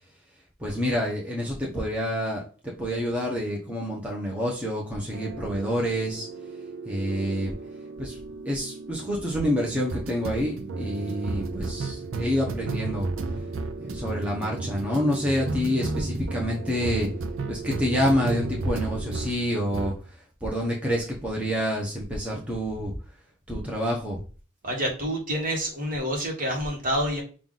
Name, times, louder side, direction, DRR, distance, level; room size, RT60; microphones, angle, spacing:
voice 1, 0.6-2.4 2.8-6.3 6.8-7.5 8.0-8.2 8.4-13.1 13.8-17.1 17.5-22.9 23.5-24.2, equal, 5° right, -3 dB, 0.8 m, -28 dB
sound 1, 5.1-19.4 19.7-20.0, right 3 dB, 85° right, 0.5 m, -33 dB
voice 2, 24.6-27.2, equal, 45° right, -1 dB, 1.5 m, -28 dB
5.7 x 2.4 x 3.8 m, 0.39 s
head